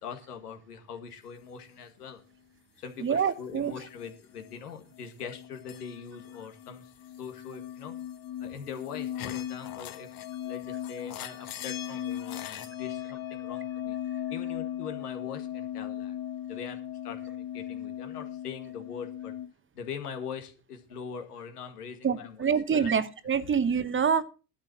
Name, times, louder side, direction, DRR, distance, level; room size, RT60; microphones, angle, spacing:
voice 1, 0.0-2.2 2.8-6.9 7.2-7.9 8.4-10.1 10.4-14.0 14.3-16.2 16.5-19.3 19.7-23.0 23.4-23.6, left 6 dB, 85° left, 6 dB, 2.0 m, -42 dB
voice 2, 3.0-3.7 22.0-24.2, right 7 dB, 25° right, 14 dB, 1.0 m, -26 dB
sound 1, 3.8-4.7 4.9-19.5, left 11 dB, 50° left, 1.4 m, -38 dB
12.0 x 7.3 x 6.1 m, 0.35 s
hypercardioid pair, 70°, 45 cm